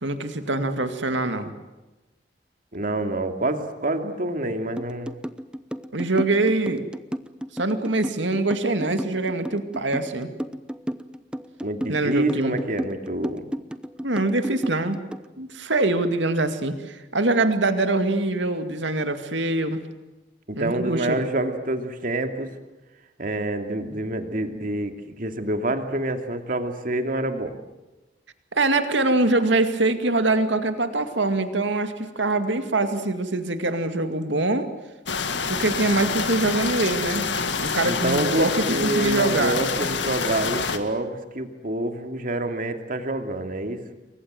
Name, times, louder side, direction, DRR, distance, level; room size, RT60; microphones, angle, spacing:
voice 1, 0.0-1.5 5.9-6.9 7.5-10.3 11.9-12.6 14.0-15.0 15.4-19.8 20.6-21.3 28.5-34.7 35.5-37.3 37.6-39.6, right 2 dB, 75° right, 8 dB, 2.3 m, -24 dB
voice 2, 2.7-5.1 11.6-13.5 20.5-22.5 23.2-27.6 37.8-43.9, right 1 dB, 50° right, 6 dB, 2.6 m, -27 dB
sound 1, 4.8-15.3, equal, 5° right, 0.8 m, -32 dB
sound 2, 35.1-40.8, left 5 dB, 75° left, 2.1 m, -27 dB
29.0 x 23.0 x 7.9 m, 1.1 s
head